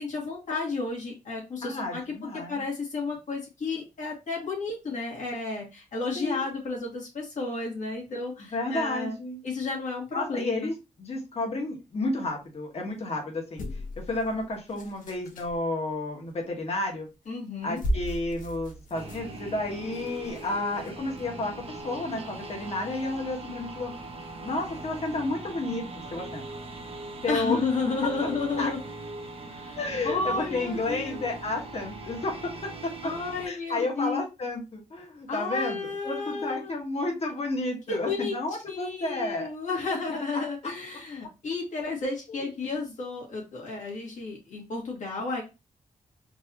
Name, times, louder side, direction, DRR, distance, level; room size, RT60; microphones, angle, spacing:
voice 1, 0.0-9.1 9.4-10.7 17.3-17.8 27.3-28.8 29.5-29.8 30.0-31.2 33.0-34.2 35.3-36.7 37.9-38.4 38.7-45.4, left 4 dB, 70° left, -2 dB, 2.1 m, -32 dB
voice 2, 1.6-2.6 6.2-6.5 8.4-9.4 10.1-13.6 14.1-17.1 17.6-21.5 21.8-23.9 24.4-26.5 27.2-27.6 28.2-28.3 28.6-28.7 29.8-32.9 33.4-39.5 42.3-42.5 42.8-42.9, left 2 dB, 50° left, 1 dB, 1.4 m, -31 dB
sound 1, 13.6-15.6 17.1-17.3 17.6-21.2 21.8-21.9, equal, 85° left, 1.0 m, -36 dB
sound 2, 18.9-33.5, right 2 dB, 45° right, 0.7 m, -41 dB
4.5 x 2.7 x 2.8 m, 0.27 s
wide cardioid pair, 100°, 13 cm